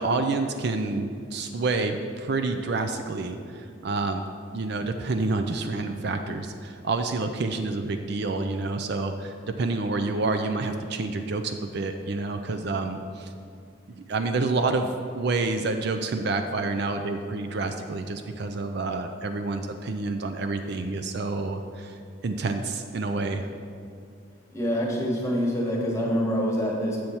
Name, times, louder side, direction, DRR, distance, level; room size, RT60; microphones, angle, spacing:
voice 1, 0.0-4.2 4.5-13.3 14.1-22.0 22.2-23.5, right 3 dB, 55° right, 6 dB, 0.4 m, -28 dB
voice 2, 24.5-27.0, equal, 15° left, -2 dB, 1.2 m, -26 dB
7.8 x 4.4 x 7.0 m, 2.3 s
head